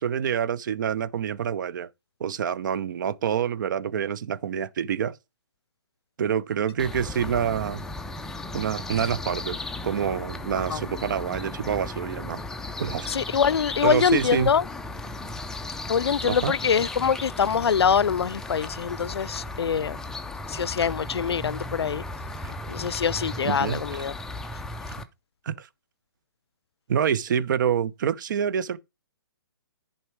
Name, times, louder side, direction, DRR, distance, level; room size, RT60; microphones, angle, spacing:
voice 1, 0.0-1.9 2.2-5.2 6.2-7.8 8.5-9.6 9.8-12.4 12.8-13.1 13.8-14.5 16.3-16.5 22.4-22.5 23.4-23.8 25.5-25.7 26.9-28.8, right 8 dB, 50° right, 0.8 m, -27 dB
sound 1, 6.8-25.0, left 2 dB, 5° left, 0.5 m, -36 dB
voice 2, 13.1-14.6 15.9-20.0 20.5-22.0 22.7-24.1, left 7 dB, 90° left, 0.4 m, -24 dB
11.0 x 4.3 x 4.6 m
hypercardioid pair, 150°, 13 cm